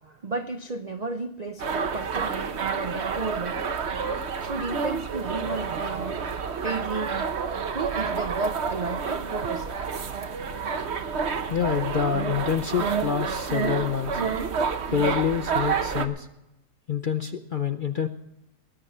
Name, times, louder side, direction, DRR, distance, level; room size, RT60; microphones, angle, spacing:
voice 1, 0.0-3.6 4.4-6.2 6.6-7.3 7.7-9.8, right 3 dB, 65° right, 0.4 m, -33 dB
sound 1, 1.6-16.1, right 5 dB, 45° right, 1.1 m, -29 dB
voice 2, 11.5-14.2 14.9-16.3 16.9-18.1, left 7 dB, 55° left, 0.5 m, -27 dB
20.5 x 9.7 x 5.5 m
omnidirectional pair, 1.8 m